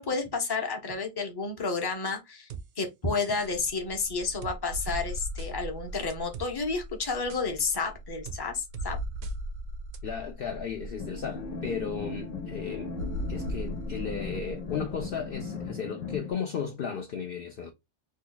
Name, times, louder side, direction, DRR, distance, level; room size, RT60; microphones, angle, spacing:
voice 1, 0.0-2.5 2.8-9.0, left 4 dB, 25° left, 0.7 m, -31 dB
sound 1, 2.5-2.6 3.2-3.6 4.4-4.6 5.4-5.5 6.1-6.5 7.3-7.4 8.2-8.4 8.7-8.9 9.2-9.3 9.9-10.0, right 7 dB, 60° right, 0.6 m, -41 dB
sound 2, 3.4-15.3, equal, 80° right, 0.9 m, -39 dB
voice 2, 10.0-12.9 13.3-17.7, left 6 dB, 60° left, 0.6 m, -35 dB
sound 3, 11.0-16.3, left 4 dB, 85° left, 1.1 m, -38 dB
3.0 x 2.2 x 3.8 m
omnidirectional pair, 1.2 m